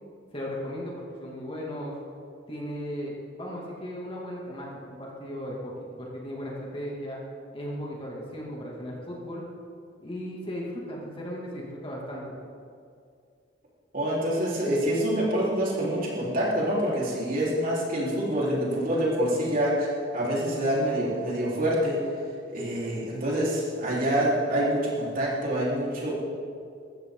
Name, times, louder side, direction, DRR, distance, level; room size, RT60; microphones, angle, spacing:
voice 1, 0.3-0.9 1.2-1.9 2.5-7.2 7.5-9.5 10.0-12.4, equal, 30° left, -3 dB, 2.6 m, -36 dB
voice 2, 13.9-22.0 22.5-26.1, equal, 50° right, -6 dB, 4.4 m, -26 dB
21.5 x 14.5 x 4.0 m, 2.4 s
head